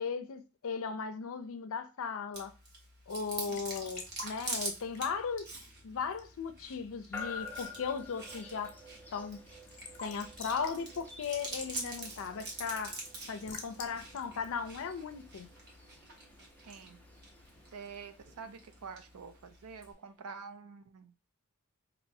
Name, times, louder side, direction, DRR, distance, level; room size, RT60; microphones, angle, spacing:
voice 1, 0.0-2.5 3.1-5.4 5.8-8.7 9.1-9.4 10.0-13.0 13.3-15.5, left 5 dB, 65° left, 0.5 m, -37 dB
Chewing mastication, 2.3-19.9, right 2 dB, 50° right, 1.2 m, -46 dB
Raindrop / Drip / Trickle dribble, 3.2-15.7, left 4 dB, 35° left, 0.9 m, -52 dB
sound 1, 7.1-20.1, left 4 dB, 10° left, 0.6 m, -50 dB
voice 2, 16.7-17.0 17.7-21.1, right 5 dB, 75° right, 0.5 m, -47 dB
4.1 x 2.9 x 2.7 m
head